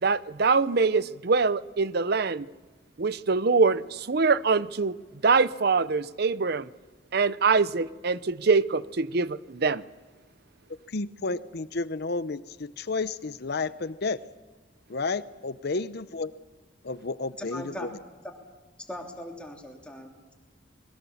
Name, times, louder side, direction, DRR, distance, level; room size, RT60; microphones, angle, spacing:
voice 1, 0.0-2.5 3.0-5.0 5.2-6.7 7.1-9.8, right 4 dB, 55° right, 0.7 m, -24 dB
voice 2, 10.9-14.2 14.9-16.3 16.8-17.9, left 3 dB, 55° left, 0.7 m, -31 dB
voice 3, 17.4-17.9 18.8-20.3, left 1 dB, 5° left, 3.2 m, -40 dB
26.5 x 21.5 x 7.2 m
head